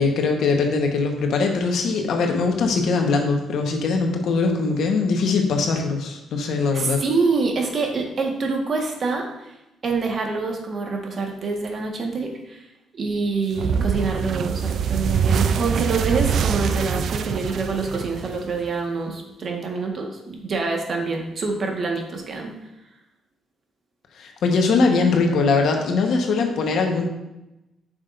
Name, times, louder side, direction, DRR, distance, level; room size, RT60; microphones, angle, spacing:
voice 1, 0.0-7.0 24.2-27.1, left 4 dB, 70° left, 3 dB, 1.1 m, -21 dB
voice 2, 6.7-9.3 9.8-12.6 12.9-22.5, right 4 dB, 50° right, 2 dB, 1.4 m, -26 dB
sound 1, 13.6-18.7, right 7 dB, 65° right, 0.4 m, -24 dB
8.7 x 6.2 x 2.6 m, 0.96 s
cardioid pair, 90°, 0 cm